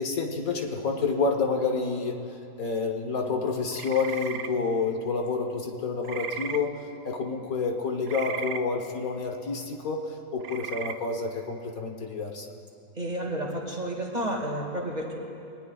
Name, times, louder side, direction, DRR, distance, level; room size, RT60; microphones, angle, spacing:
voice 1, 0.0-2.2 2.6-6.7 7.0-12.5, left 4 dB, 65° left, 2 dB, 1.5 m, -29 dB
sound 1, 3.7-4.5 6.0-6.6 8.1-8.6 10.4-10.9, right 8 dB, 85° right, 1.2 m, -35 dB
voice 2, 13.0-15.1, right 1 dB, 25° right, -1 dB, 2.0 m, -31 dB
23.5 x 19.5 x 2.3 m, 2.6 s
omnidirectional pair, 1.7 m